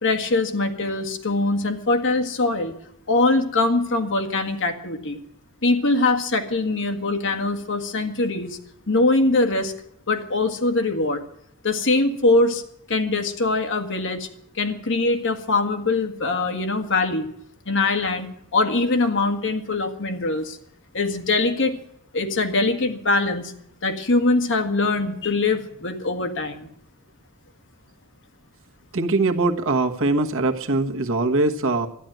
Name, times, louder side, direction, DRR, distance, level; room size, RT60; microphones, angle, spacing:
voice 1, 0.0-2.7 3.1-5.2 5.6-8.6 8.9-9.7 10.1-11.2 11.6-12.6 12.9-14.3 14.6-17.3 17.7-18.3 18.5-20.6 20.9-21.8 22.1-23.5 23.8-26.7, left 2 dB, 60° left, 6 dB, 1.7 m, -22 dB
voice 2, 28.9-31.9, right 2 dB, 65° right, 4 dB, 1.4 m, -22 dB
12.5 x 10.5 x 9.1 m, 0.72 s
head